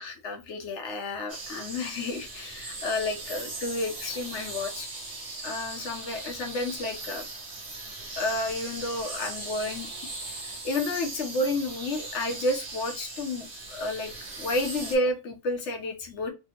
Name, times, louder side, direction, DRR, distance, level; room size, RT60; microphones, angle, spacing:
voice 1, 0.0-4.9 5.4-7.2 8.2-9.9 10.3-10.4 10.6-16.3, left 2 dB, 75° left, 1.1 m, -31 dB
sound 1, 1.3-15.0, right 2 dB, 50° right, 1.2 m, -39 dB
3.5 x 2.1 x 2.8 m
omnidirectional pair, 1.2 m